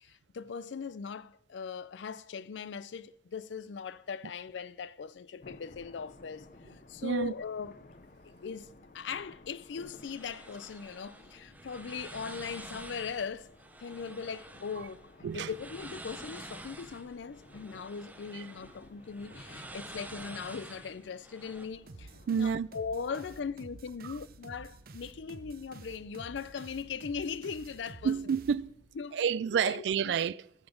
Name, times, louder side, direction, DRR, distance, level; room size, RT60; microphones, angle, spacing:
voice 1, 0.0-6.5 6.9-7.8 8.4-8.7 8.9-13.5 13.8-15.1 15.3-22.1 22.4-28.1 29.0-29.2 29.6-30.1, left 6 dB, 85° left, 0.4 m, -39 dB
sound 1, 5.4-22.4, left 2 dB, 45° left, 0.7 m, -56 dB
voice 2, 7.0-7.3 15.2-15.5 18.3-18.5 22.3-22.7 24.0-24.2 28.0-28.7 29.1-30.5, right 7 dB, 75° right, 0.3 m, -29 dB
sound 2, 9.9-21.7, right 2 dB, 10° right, 0.7 m, -49 dB
sound 3, 21.9-29.0, right 3 dB, 50° right, 0.7 m, -50 dB
15.0 x 6.9 x 5.2 m
head